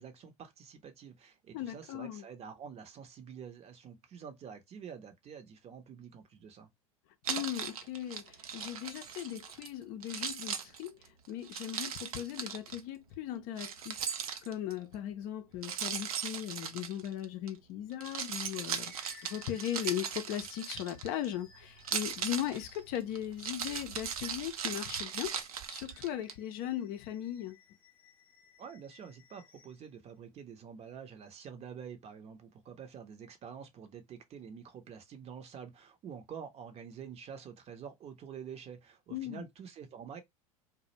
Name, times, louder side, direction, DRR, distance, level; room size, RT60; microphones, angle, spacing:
voice 1, 0.0-6.7 28.6-40.2, right 7 dB, 35° right, 0.7 m, -47 dB
voice 2, 1.5-2.2 7.3-11.0 11.3-14.0 14.4-18.9 19.2-25.3 25.7-27.6 39.1-39.5, left 11 dB, 50° left, 0.5 m, -38 dB
Keys jangling, 7.2-9.7 10.0-12.8 13.6-14.8 15.6-17.5 17.9-21.3 21.8-26.3, right 7 dB, 80° right, 0.5 m, -38 dB
sound 1, 18.5-23.1 25.8-29.8, left 4 dB, 10° left, 0.6 m, -59 dB
sound 2, 21.3-26.0 26.4-26.5, right 5 dB, 60° right, 1.1 m, -58 dB
2.4 x 2.0 x 2.9 m
hypercardioid pair, 85°, 18 cm